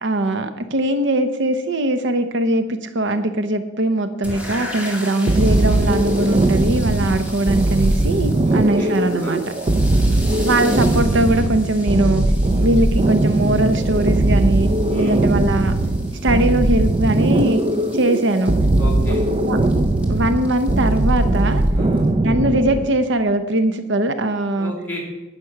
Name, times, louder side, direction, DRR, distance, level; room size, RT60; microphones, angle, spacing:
voice 1, 0.0-9.4 10.4-12.2 12.6-15.7 16.2-17.6 17.9-18.5 19.5-19.6 20.1-21.6 22.2-24.7, right 1 dB, 65° right, 9 dB, 0.8 m, -20 dB
sound 1, 4.2-22.1, equal, 5° right, 2.4 m, -38 dB
sound 2, 5.3-22.9, right 2 dB, 30° right, 0.5 m, -19 dB
voice 2, 8.4-9.4 14.9-15.2 18.8-19.2 21.7-22.1 24.5-25.0, equal, 10° left, -4 dB, 4.1 m, -32 dB
11.0 x 9.3 x 5.8 m, 1.1 s
head